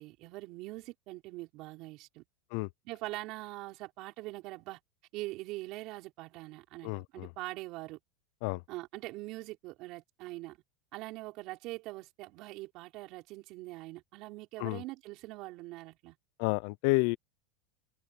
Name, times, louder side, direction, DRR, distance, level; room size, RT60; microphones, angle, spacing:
voice 1, 0.0-2.2 2.9-4.8 5.1-8.0 8.7-10.6 10.9-16.2, right 20 dB, 50° right, 5.3 m, -43 dB
voice 2, 6.8-7.3 8.4-8.6 14.6-14.8 16.4-17.2, left 27 dB, 60° left, 0.5 m, -30 dB
open air
supercardioid pair, 140°, 0 cm